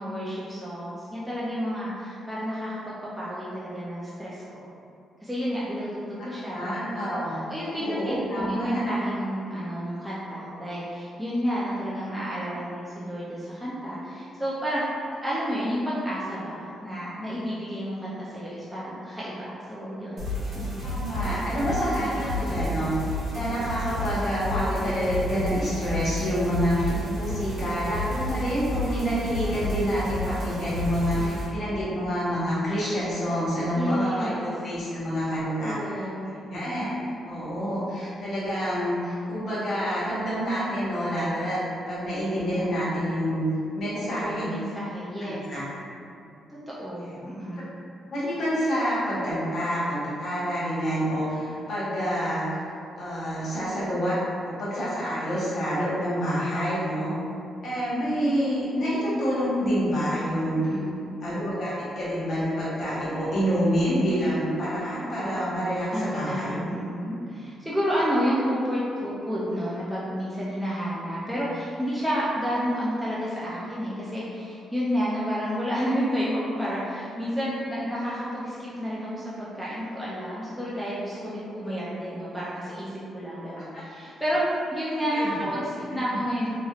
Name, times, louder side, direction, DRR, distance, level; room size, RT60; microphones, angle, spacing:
voice 1, 0.0-4.7 5.2-6.6 7.3-14.8 15.2-20.3 33.7-34.5 35.5-36.3 43.8-45.4 46.5-47.7 60.6-61.2 65.9-84.4 84.7-86.5, equal, ahead, -9 dB, 0.3 m, -30 dB
voice 2, 6.5-7.4 7.8-8.8 20.8-35.8 36.2-41.6 41.9-43.5 43.8-44.5 45.2-45.6 47.1-47.2 48.1-52.5 53.0-54.2 54.4-57.1 57.6-60.8 61.2-66.6 83.7-83.8 85.1-85.6, equal, 45° left, -9 dB, 1.0 m, -27 dB
sound 1, 20.2-31.5, left 1 dB, 50° right, 1.1 m, -31 dB
3.0 x 2.9 x 2.3 m, 2.5 s
cardioid pair, 165°, 0 cm